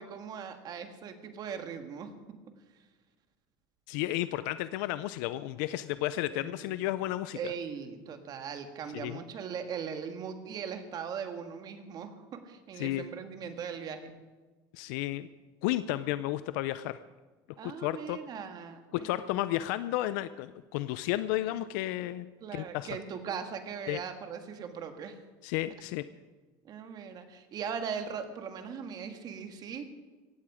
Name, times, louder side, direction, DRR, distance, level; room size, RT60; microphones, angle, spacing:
voice 1, 0.0-2.1 6.3-6.8 7.3-14.1 17.6-19.3 22.4-25.2 26.6-29.9, right 7 dB, 40° right, 7 dB, 1.9 m, -39 dB
voice 2, 3.9-7.5 8.9-9.2 12.8-13.1 14.7-15.3 15.6-17.0 17.6-18.2 18.9-22.3 22.5-22.9 23.9-24.0 25.4-26.1, left 15 dB, 80° left, 14 dB, 0.6 m, -32 dB
17.0 x 16.0 x 5.0 m, 1.3 s
cardioid pair, 130°, 10 cm